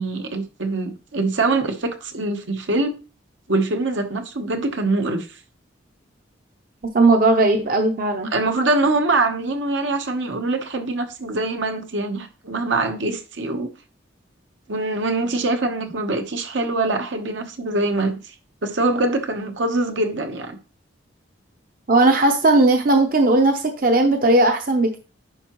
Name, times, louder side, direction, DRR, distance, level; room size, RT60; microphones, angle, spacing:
voice 1, 0.0-3.0 3.5-5.3 8.3-13.7 14.7-18.2 18.6-20.6, right 2 dB, 75° right, 1.1 m, -23 dB
voice 2, 6.9-8.3 21.9-25.0, right 2 dB, 45° right, 0.7 m, -17 dB
10.5 x 4.6 x 3.1 m
head